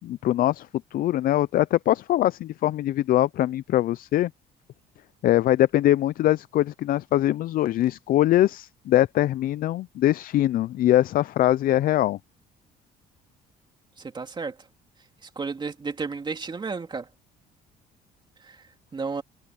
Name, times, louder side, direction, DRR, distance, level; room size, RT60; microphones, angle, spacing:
voice 1, 0.0-4.3 5.2-12.2, left 13 dB, 60° left, 0.5 m, -22 dB
voice 2, 14.0-14.6 15.2-17.1 18.4-18.6 18.9-19.2, right 4 dB, 25° right, 2.8 m, -32 dB
cardioid pair, 110°, 17 cm